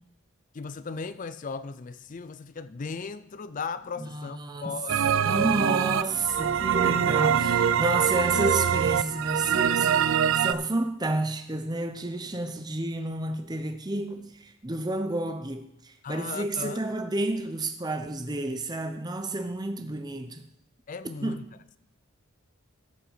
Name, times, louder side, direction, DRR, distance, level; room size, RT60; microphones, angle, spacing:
voice 1, 0.5-5.3 16.0-16.8 20.9-21.4, left 5 dB, 35° left, 0.4 m, -37 dB
voice 2, 4.0-4.8 5.1-20.5 21.2-21.5, right 2 dB, 20° right, 0.7 m, -30 dB
sound 1, 4.9-10.5, right 8 dB, 60° right, 0.3 m, -24 dB
13.5 x 5.6 x 5.7 m
head